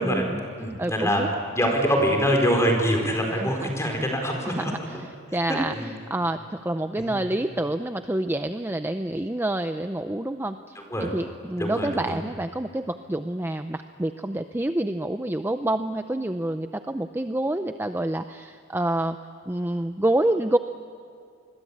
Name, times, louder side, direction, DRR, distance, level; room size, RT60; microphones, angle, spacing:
voice 1, 0.0-0.4 0.8-1.3 3.4-3.7 4.5-19.2 19.5-20.6, right 1 dB, 10° right, 8 dB, 0.5 m, -28 dB
voice 2, 0.6-5.0 5.3-6.0 7.0-7.1 10.7-11.1 11.6-12.2, equal, 15° left, 2 dB, 4.5 m, -25 dB
27.0 x 21.5 x 8.5 m, 2.4 s
head